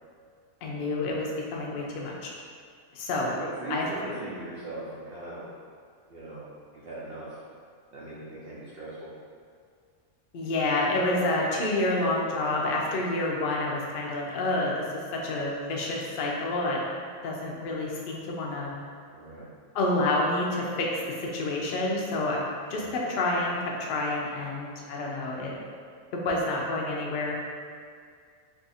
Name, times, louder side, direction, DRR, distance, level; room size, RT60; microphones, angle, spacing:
voice 1, 0.6-2.3 2.9-3.3 3.7-3.9 10.3-14.8 15.1-16.8 17.2-18.7 19.7-22.4 22.7-25.5 26.1-27.4, left 2 dB, 70° left, -2 dB, 0.5 m, -28 dB
voice 2, 3.2-5.4 6.1-6.5 6.7-7.4 7.9-9.1 19.1-19.5 22.8-23.0, right 2 dB, 70° right, -8 dB, 0.5 m, -39 dB
2.7 x 2.4 x 4.0 m, 2.1 s
omnidirectional pair, 1.6 m